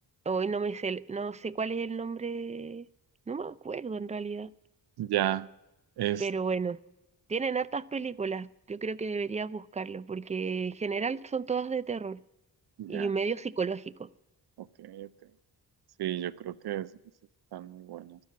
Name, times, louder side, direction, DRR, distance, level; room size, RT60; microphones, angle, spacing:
voice 1, 0.3-2.9 3.3-4.5 6.2-6.8 7.3-12.2 12.9-14.1, right 5 dB, 20° right, 0.4 m, -32 dB
voice 2, 5.0-5.5 6.0-6.2 12.8-13.1 14.8-15.1 16.0-16.9 17.5-18.2, right 12 dB, 75° right, 0.6 m, -32 dB
13.0 x 12.0 x 8.5 m
cardioid pair, 95°, 39 cm